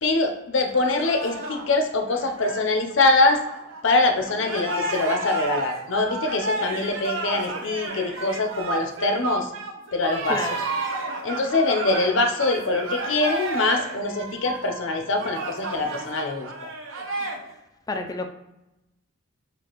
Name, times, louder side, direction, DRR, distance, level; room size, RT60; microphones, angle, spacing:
voice 1, 0.0-3.4 3.8-9.5 9.9-10.6 11.2-16.5, left 2 dB, 70° left, 5 dB, 0.7 m, -23 dB
sound 1, 0.7-4.0 4.2-17.4, right 2 dB, 90° right, 0.8 m, -32 dB
voice 2, 17.9-18.3, left 2 dB, 20° left, 5 dB, 0.4 m, -28 dB
6.8 x 2.5 x 3.0 m, 0.92 s
head